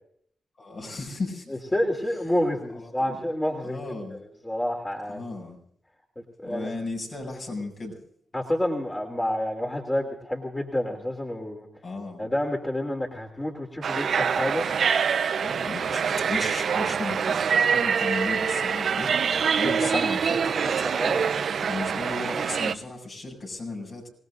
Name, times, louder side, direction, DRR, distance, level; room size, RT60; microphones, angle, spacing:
voice 1, 0.6-1.6 2.7-3.2 3.6-4.2 5.1-5.6 6.4-8.0 10.9-11.0 11.8-12.2 15.4-20.5 21.6-24.1, left 3 dB, 55° left, 0 dB, 7.8 m, -35 dB
voice 2, 1.5-3.8 4.1-5.2 6.4-6.7 8.3-11.7 12.2-14.7 19.6-21.3, left 1 dB, 15° left, 1 dB, 3.2 m, -29 dB
sound 1, 13.8-22.7, right 6 dB, 65° right, 0.9 m, -25 dB
27.0 x 18.5 x 2.6 m, 0.64 s
cardioid pair, 60°, 0 cm